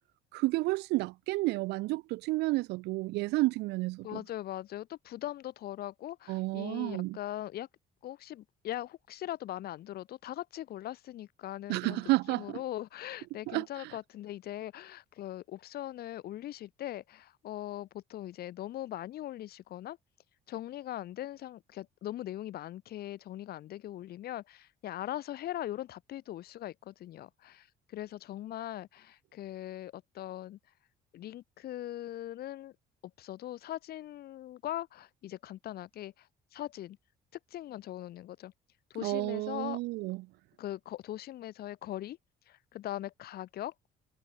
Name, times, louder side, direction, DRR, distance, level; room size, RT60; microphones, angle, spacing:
voice 1, 0.3-4.2 6.3-7.2 11.7-12.6 13.5-13.7 39.0-40.2, right 21 dB, 85° right, 0.6 m, -31 dB
voice 2, 4.0-7.7 8.0-12.0 12.3-20.0 20.5-30.6 31.1-32.8 33.2-37.0 37.5-38.5 38.9-39.8 40.6-42.2 42.5-43.7, left 13 dB, 65° left, 2.9 m, -40 dB
cardioid pair, 110°, 17 cm